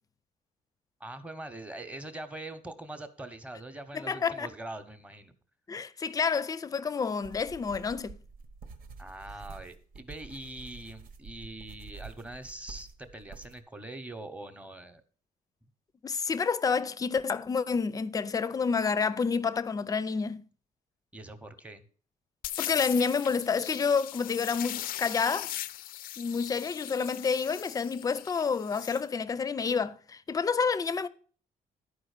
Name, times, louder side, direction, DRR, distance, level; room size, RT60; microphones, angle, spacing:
voice 1, 1.0-5.3 9.0-15.0 21.1-21.8, right 2 dB, 10° right, 0.9 m, -43 dB
voice 2, 3.9-4.5 5.7-8.2 16.0-20.4 22.6-25.5 26.2-31.1, left 5 dB, 25° left, 0.5 m, -29 dB
sound 1, 7.2-13.6, right 4 dB, 85° right, 1.3 m, -48 dB
sound 2, 22.4-29.0, left 13 dB, 80° left, 0.4 m, -39 dB
11.5 x 4.9 x 6.5 m
cardioid pair, 170°, 15 cm